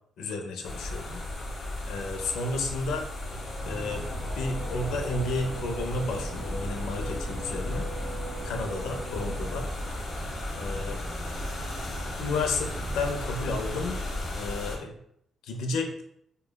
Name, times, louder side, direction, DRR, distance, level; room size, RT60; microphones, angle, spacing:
voice 1, 0.2-1.2 1.8-3.1 3.6-4.0 4.3-7.9 8.4-9.7 10.5-11.0 12.2-14.0 14.3-15.0 15.4-16.0, left 3 dB, 90° left, 4 dB, 0.5 m, -32 dB
sound 1, 0.6-14.8, left 1 dB, 45° left, 0.8 m, -35 dB
Race car auto racing / Accelerating revving vroom, 2.8-10.0, right 1 dB, 45° right, 1.2 m, -42 dB
sound 2, 3.6-14.4, right 1 dB, 20° right, 0.3 m, -41 dB
4.9 x 2.2 x 2.2 m, 0.70 s
cardioid pair, 135°, 0 cm